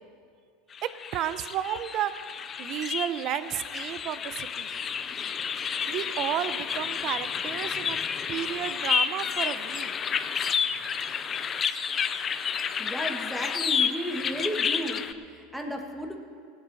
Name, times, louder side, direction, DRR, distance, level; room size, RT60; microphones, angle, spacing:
sound 1, 0.7-15.1, left 7 dB, 25° left, 0.5 m, -30 dB
voice 1, 0.8-2.1 2.6-4.7 5.9-8.0 8.3-9.9, right 11 dB, 45° right, 13 dB, 0.6 m, -32 dB
voice 2, 12.8-16.2, equal, ahead, 2 dB, 1.5 m, -34 dB
18.0 x 7.5 x 6.2 m, 2.2 s
supercardioid pair, 125°, 0 cm